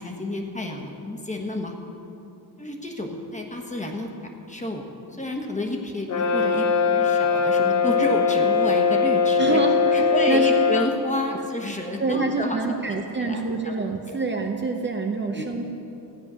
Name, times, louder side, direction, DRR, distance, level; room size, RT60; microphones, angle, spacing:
voice 1, 0.0-1.7 2.6-4.9 5.2-9.6 9.9-13.7 14.1-14.2 15.3-15.5, left 1 dB, 20° left, 2 dB, 1.2 m, -30 dB
Brass instrument, 6.1-11.0, left 5 dB, 45° left, 0.7 m, -20 dB
voice 2, 9.4-9.8 10.3-10.5 12.0-15.6, right 3 dB, 30° right, 2 dB, 0.7 m, -26 dB
14.5 x 9.5 x 6.2 m, 2.9 s
wide cardioid pair, 165°, 40 cm